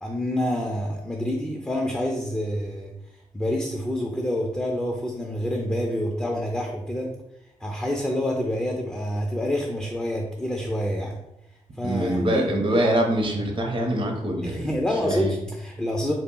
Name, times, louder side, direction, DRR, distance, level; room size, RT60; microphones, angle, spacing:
voice 1, 0.0-2.9 3.3-7.2 7.6-11.2 11.8-12.5 14.4-16.1, left 1 dB, 5° left, 0 dB, 0.4 m, -27 dB
voice 2, 11.8-14.7 15.0-15.3, right 1 dB, 40° right, 2 dB, 0.7 m, -24 dB
2.1 x 2.0 x 3.6 m, 0.86 s
cardioid pair, 55°, 13 cm